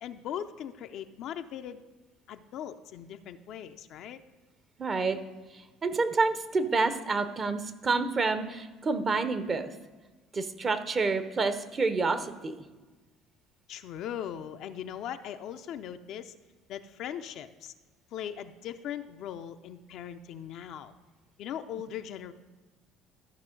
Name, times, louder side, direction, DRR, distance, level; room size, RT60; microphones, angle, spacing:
voice 1, 0.0-1.8 2.3-4.2 13.7-16.3 16.7-17.7 18.1-21.0 21.4-22.3, left 9 dB, 65° left, 8 dB, 0.5 m, -39 dB
voice 2, 4.8-5.2 5.5-9.7 10.3-12.5, right 3 dB, 35° right, 10 dB, 0.9 m, -28 dB
13.5 x 5.6 x 3.8 m, 1.2 s
hypercardioid pair, 60°, 0 cm